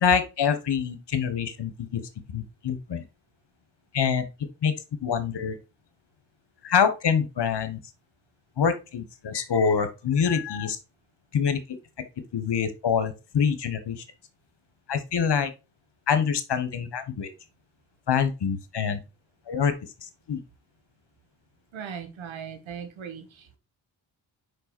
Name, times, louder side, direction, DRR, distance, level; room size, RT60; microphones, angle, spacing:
voice 1, 0.0-2.0 2.3-3.0 3.9-4.2 4.6-4.7 5.0-5.6 6.6-7.8 8.6-10.8 11.3-11.6 12.3-14.0 14.9-15.5 16.1-17.3 18.1-19.0 19.5-19.7 20.3-20.4, left 7 dB, 60° left, 10 dB, 1.3 m, -25 dB
voice 2, 21.7-23.6, right 7 dB, 80° right, 7 dB, 1.4 m, -39 dB
4.8 x 4.6 x 4.3 m, 0.29 s
supercardioid pair, 50°, 47 cm